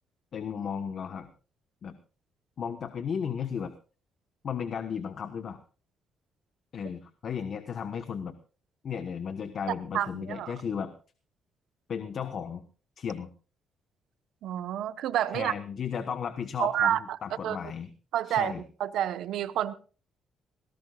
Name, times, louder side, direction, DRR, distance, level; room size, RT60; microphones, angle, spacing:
voice 1, 0.3-1.3 1.8-1.9 2.6-3.7 4.4-5.6 6.7-8.4 8.8-10.9 11.9-12.6 13.0-13.3 15.3-17.9 18.2-18.6, left 7 dB, 55° left, 1.2 m, -34 dB
voice 2, 9.9-10.5 14.4-15.5 16.6-17.2 17.4-17.6 18.1-18.5 18.8-19.7, right 11 dB, 80° right, 1.0 m, -28 dB
20.5 x 17.5 x 2.4 m
cardioid pair, 90°, 0 cm